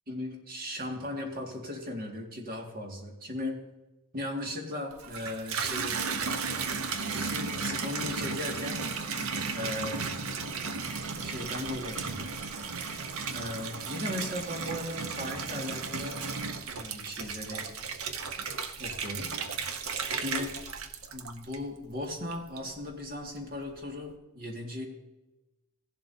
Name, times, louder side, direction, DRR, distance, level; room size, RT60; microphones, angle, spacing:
voice 1, 0.1-3.6 4.1-6.0 6.6-8.8 9.5-10.1 11.2-12.7 13.3-16.2 16.7-17.7 18.8-19.3 19.6-19.7 20.1-20.6 21.1-24.9, left 1 dB, 40° right, 1 dB, 2.0 m, -37 dB
Water tap faucet / Bathtub (filling or washing), 4.9-21.8 22.3-22.9, right 5 dB, 70° right, 0.8 m, -35 dB
15.5 x 11.5 x 2.7 m, 1.0 s
head